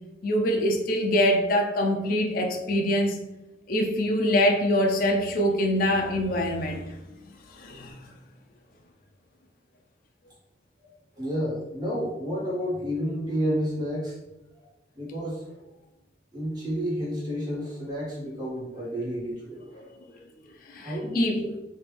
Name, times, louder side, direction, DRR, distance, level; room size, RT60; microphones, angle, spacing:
voice 1, 0.2-3.2 3.7-6.9 7.5-8.0 19.8-19.9 20.7-21.4, left 1 dB, 50° left, 2 dB, 0.4 m, -24 dB
voice 2, 11.2-14.2 15.0-15.5 16.3-19.8 20.8-21.5, equal, 20° right, -6 dB, 1.1 m, -30 dB
3.1 x 2.5 x 3.3 m, 0.97 s
head